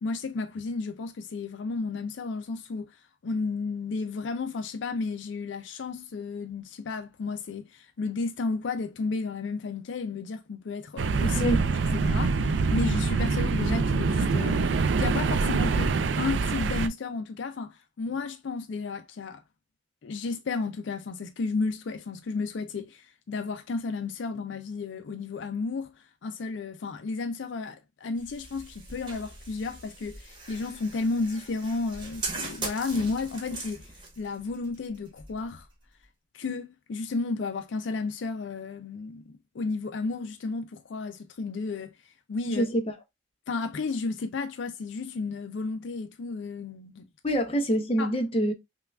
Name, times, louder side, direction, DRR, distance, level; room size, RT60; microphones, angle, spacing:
voice 1, 0.0-3.0 3.2-11.5 11.9-14.6 15.0-19.4 20.0-25.9 26.2-35.7 36.3-42.0 42.3-42.7 43.5-47.1 48.0-48.1, left 4 dB, 75° left, 0.4 m, -33 dB
sound 1, 11.0-16.9, right 4 dB, 70° right, 0.4 m, -25 dB
voice 2, 11.3-11.7 42.5-42.9 47.2-48.5, equal, 30° left, 0.7 m, -26 dB
sound 2, 28.2-36.0, right 3 dB, 25° right, 1.0 m, -41 dB
5.5 x 2.3 x 2.3 m
head